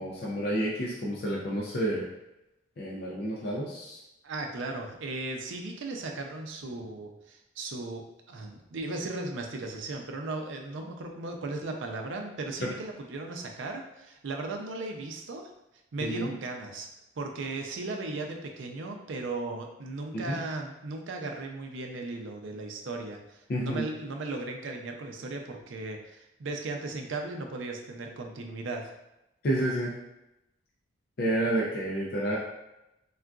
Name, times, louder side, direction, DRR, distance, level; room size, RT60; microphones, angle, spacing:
voice 1, 0.0-2.0 2.8-4.0 16.0-16.3 20.1-20.4 23.5-23.9 29.4-29.9 31.2-32.4, right 1 dB, 50° left, -4 dB, 0.4 m, -30 dB
voice 2, 4.2-8.0 8.3-15.5 15.9-16.9 17.2-29.0, right 2 dB, 70° right, 3 dB, 0.4 m, -36 dB
3.6 x 2.4 x 2.3 m, 0.91 s
head